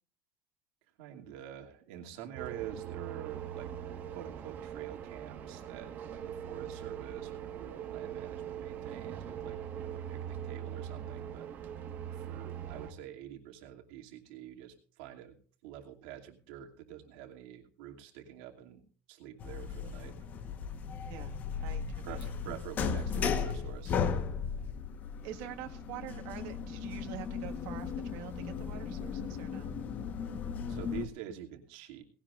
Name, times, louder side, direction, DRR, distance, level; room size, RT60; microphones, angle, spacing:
voice 1, 1.0-3.7 4.1-11.5 12.1-15.4 15.6-18.8 19.1-20.3 22.0-24.0 30.7-32.1, right 11 dB, 75° right, 3 dB, 2.6 m, -47 dB
sound 1, 2.4-12.9, right 9 dB, 35° right, 1.5 m, -41 dB
sound 2, 19.4-31.1, left 6 dB, 30° left, 1.2 m, -36 dB
voice 2, 21.6-22.3 25.2-29.7, right 12 dB, 60° right, 3 dB, 1.7 m, -45 dB
18.5 x 17.0 x 2.5 m, 0.41 s
cardioid pair, 170°, 5 cm